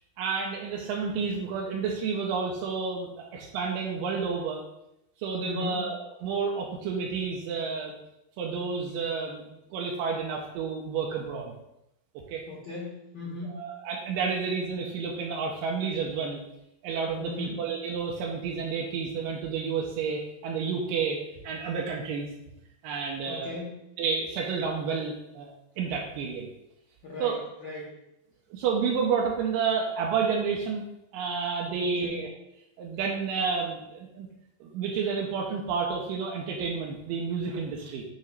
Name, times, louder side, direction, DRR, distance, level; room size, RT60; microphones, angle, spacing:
voice 1, 0.2-4.6 5.2-8.0 8.4-11.5 12.3-12.4 13.4-16.4 16.8-22.3 22.8-23.6 24.0-26.5 27.2-27.4 28.5-30.8 31.1-32.3 32.8-34.3 34.6-38.0, right 5 dB, 85° right, 0 dB, 2.4 m, -30 dB
voice 2, 5.4-5.9 12.5-13.6 17.2-17.6 23.3-23.8 27.0-27.9 31.8-32.3, left 3 dB, 65° left, -5 dB, 1.2 m, -37 dB
8.3 x 2.9 x 4.6 m, 0.85 s
omnidirectional pair, 4.0 m